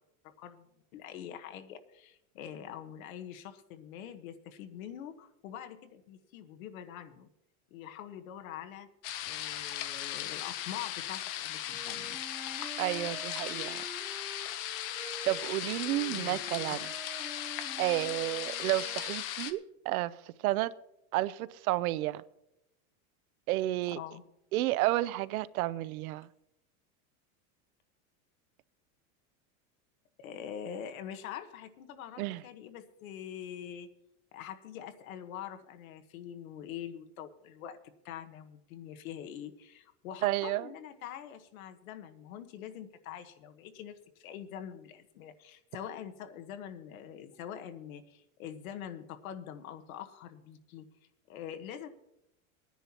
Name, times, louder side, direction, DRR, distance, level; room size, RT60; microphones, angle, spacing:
voice 1, 0.2-7.3 7.7-8.9 9.2-12.2 16.1-16.8 24.0-24.2 30.2-33.9 34.3-37.8 38.0-50.9 51.3-51.9, left 9 dB, 70° left, 1.3 m, -44 dB
sound 1, 9.0-19.5, left 12 dB, 40° left, 0.7 m, -37 dB
sound 2, 11.6-19.1, right 2 dB, 5° right, 0.6 m, -48 dB
voice 2, 12.8-13.8 15.2-16.9 17.8-20.7 21.1-22.2 23.5-24.0 24.5-26.3 32.2-32.4 40.2-40.7, right 17 dB, 85° right, 0.6 m, -31 dB
20.0 x 10.0 x 2.9 m
supercardioid pair, 175°, 42 cm